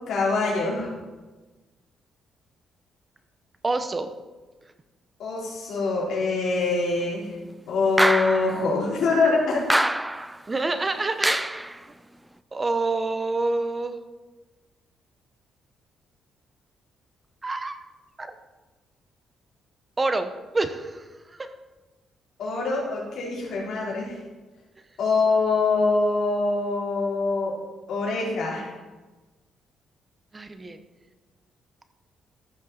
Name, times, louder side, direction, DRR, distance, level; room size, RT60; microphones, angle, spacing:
voice 1, 0.1-0.9 5.2-7.4 7.7-9.6 22.4-24.2 25.0-27.5 27.9-28.7, left 3 dB, 70° left, -5 dB, 4.1 m, -24 dB
voice 2, 3.6-4.1 10.5-11.3 12.5-13.9 17.4-17.8 18.2-18.3 20.0-21.5 30.3-30.8, right 3 dB, 25° right, 9 dB, 0.9 m, -27 dB
sound 1, 8.0-8.6 9.7-10.4 11.2-11.7, right 1 dB, 10° right, 0.4 m, -24 dB
14.5 x 6.6 x 4.2 m, 1.2 s
cardioid pair, 90°, 0 cm